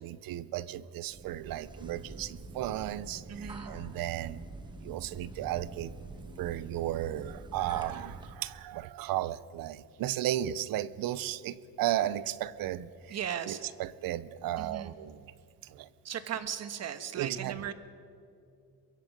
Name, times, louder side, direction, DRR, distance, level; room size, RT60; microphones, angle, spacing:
voice 1, 0.0-4.4 4.8-5.9 6.4-15.2 15.6-15.9 17.1-17.7, right 13 dB, 60° right, 0.8 m, -35 dB
sound 1, 1.1-8.4, right 2 dB, 10° right, 1.4 m, -46 dB
voice 2, 3.3-3.7 13.1-13.6 14.6-14.9 16.0-17.7, right 9 dB, 40° right, 1.4 m, -37 dB
24.0 x 21.5 x 5.4 m
cardioid pair, 140°, 38 cm